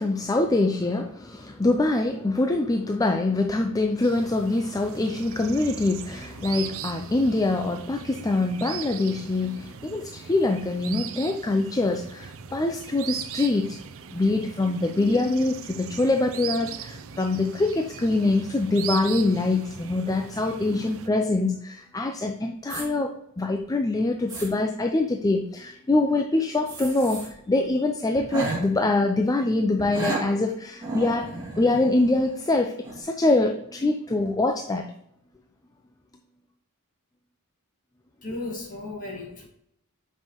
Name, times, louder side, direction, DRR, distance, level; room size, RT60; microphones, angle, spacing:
voice 1, 0.0-13.8 14.1-31.3 31.6-34.9, left 2 dB, 15° left, 4 dB, 0.4 m, -24 dB
sound 1, 4.0-21.1, right 8 dB, 65° right, 0.5 m, -39 dB
sound 2, 22.7-22.8 23.6-23.7 24.1-24.5 26.7-27.3 27.6-27.7 28.1-28.6 29.8-30.2 30.8-32.5 32.8-33.0, right 2 dB, 20° right, 2.7 m, -33 dB
voice 2, 38.2-39.5, left 2 dB, 40° left, -1 dB, 2.1 m, -35 dB
7.6 x 5.5 x 3.0 m, 0.75 s
head